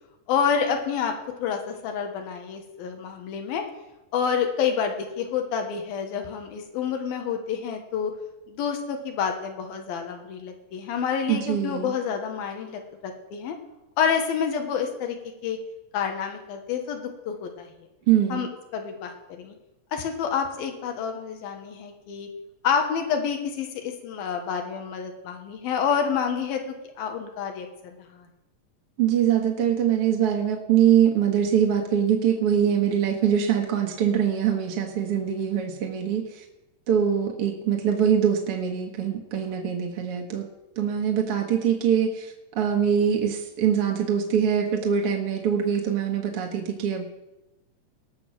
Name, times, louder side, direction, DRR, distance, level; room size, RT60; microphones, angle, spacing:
voice 1, 0.3-1.1 1.4-3.6 4.1-8.1 8.5-13.6 14.0-15.2 15.4-15.6 15.9-17.7 18.3-19.5 19.9-22.3 22.6-26.6 27.0-28.3, left 7 dB, 90° left, 4 dB, 3.2 m, -28 dB
voice 2, 11.3-11.9 18.1-18.4 29.0-36.4 36.9-40.5 40.8-47.2, right 8 dB, 55° right, 1 dB, 1.7 m, -23 dB
19.0 x 6.9 x 6.1 m, 0.96 s
omnidirectional pair, 4.1 m